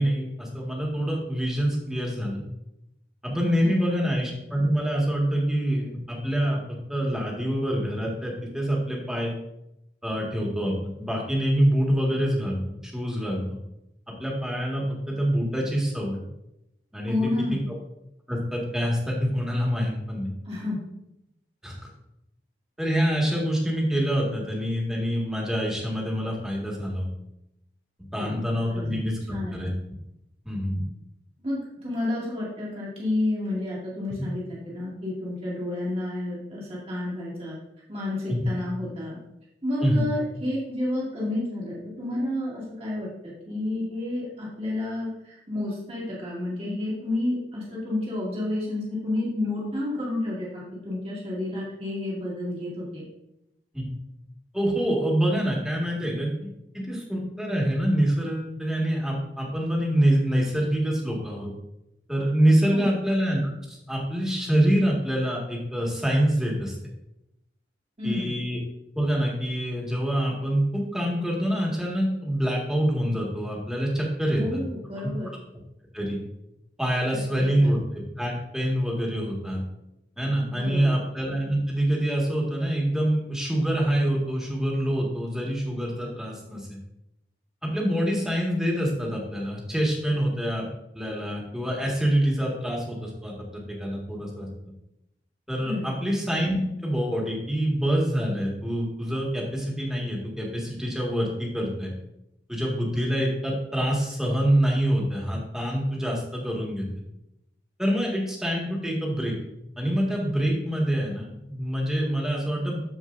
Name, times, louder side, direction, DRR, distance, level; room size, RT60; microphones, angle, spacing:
voice 1, 0.0-2.4 3.2-9.3 10.0-13.4 14.2-16.2 16.9-17.5 18.3-20.3 21.6-21.7 22.8-27.1 28.1-29.7 30.5-30.8 38.3-38.4 39.8-40.0 53.7-53.9 54.5-56.5 56.7-61.5 62.1-66.7 68.0-68.6 68.9-74.6 75.0-75.1 75.9-76.2 76.8-79.6 80.2-86.8 87.6-90.7 90.9-94.5 95.5-101.9 102.5-106.9 107.8-109.4 109.8-112.8, equal, 5° right, -3 dB, 1.8 m, -26 dB
voice 2, 3.6-4.0 17.1-17.6 20.4-20.9 28.1-28.4 28.7-28.9 29.3-29.6 31.4-37.6 37.9-39.2 39.6-53.0 62.7-63.0 68.0-68.4 74.4-75.3 77.4-77.7 80.5-80.9 95.6-95.9, left 1 dB, 35° right, -6 dB, 2.2 m, -30 dB
14.0 x 4.8 x 2.6 m, 0.86 s
head